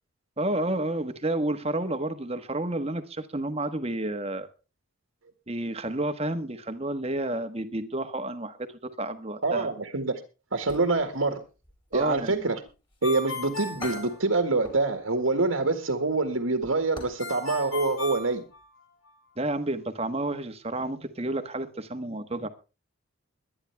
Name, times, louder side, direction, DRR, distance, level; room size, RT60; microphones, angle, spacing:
voice 1, 0.4-4.5 5.5-9.7 11.9-12.5 19.4-22.5, right 1 dB, 30° right, 9 dB, 1.3 m, -30 dB
voice 2, 9.4-10.2 10.5-11.4 11.9-12.6 13.0-18.4, right 3 dB, 80° right, 6 dB, 1.9 m, -26 dB
sound 1, 10.5-11.3 11.6-13.0 13.4-13.5 13.8-14.9 15.2-15.4 15.8-17.3 17.5-17.6 18.1-18.4 18.6-18.7, left 2 dB, 25° left, 4.7 m, -46 dB
Ringtone, 13.0-14.9 17.2-19.1, left 3 dB, 80° left, 6.3 m, -36 dB
22.5 x 10.0 x 3.5 m, 0.32 s
head